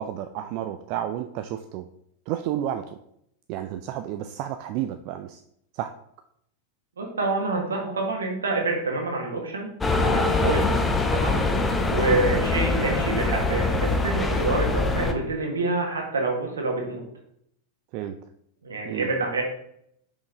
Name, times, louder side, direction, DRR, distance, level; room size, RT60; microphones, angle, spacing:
voice 1, 0.0-1.9 2.3-3.0 3.5-5.4 5.7-5.9 10.4-10.6 12.1-12.3 17.9-18.2 18.8-19.1, right 11 dB, 45° right, 8 dB, 0.3 m, -31 dB
voice 2, 7.0-10.6 11.1-11.4 11.9-17.0 18.6-19.4, right 3 dB, 70° right, 1 dB, 1.5 m, -27 dB
sound 1, 9.8-15.1, left 3 dB, 15° left, 0.7 m, -23 dB
5.4 x 5.1 x 3.6 m, 0.74 s
figure-of-eight pair, 90°, 0 cm